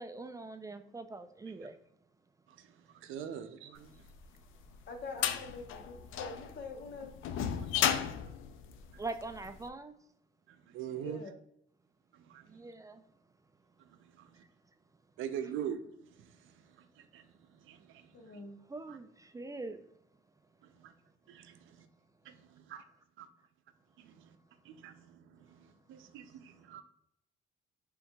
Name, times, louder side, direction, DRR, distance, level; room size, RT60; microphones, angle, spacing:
voice 1, 0.0-1.8 9.0-9.9 12.5-13.0 18.7-19.9, right 3 dB, 15° right, 0.3 m, -43 dB
voice 2, 2.5-4.0 7.7-8.1 8.9-9.0 10.5-11.2 12.1-12.5 14.0-14.4 15.2-17.3 17.6-18.4 18.9-19.0 20.6-20.9 21.3-21.9 22.2-22.8 23.2-23.3 24.0-24.4 24.6-26.8, right 9 dB, 80° right, 0.5 m, -44 dB
sound 1, 4.1-9.5, left 9 dB, 85° left, 0.4 m, -34 dB
voice 3, 4.9-7.1 10.9-11.3 18.1-18.6, left 3 dB, 60° left, 1.0 m, -45 dB
4.5 x 3.6 x 2.3 m
cardioid pair, 90°, 20 cm